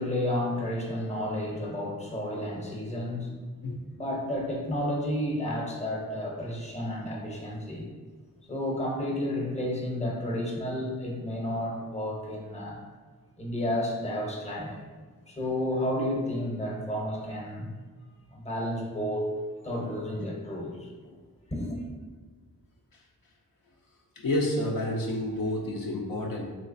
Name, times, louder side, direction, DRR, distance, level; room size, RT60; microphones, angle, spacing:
voice 1, 0.0-3.4 3.9-7.9 8.5-12.8 13.4-14.8 15.3-17.7 18.3-19.3 19.6-20.9 21.5-21.8, left 1 dB, 20° left, -2 dB, 0.8 m, -31 dB
voice 2, 24.2-26.6, left 1 dB, 65° left, -1 dB, 0.5 m, -29 dB
3.1 x 3.0 x 2.6 m, 1.4 s
cardioid pair, 60°, 37 cm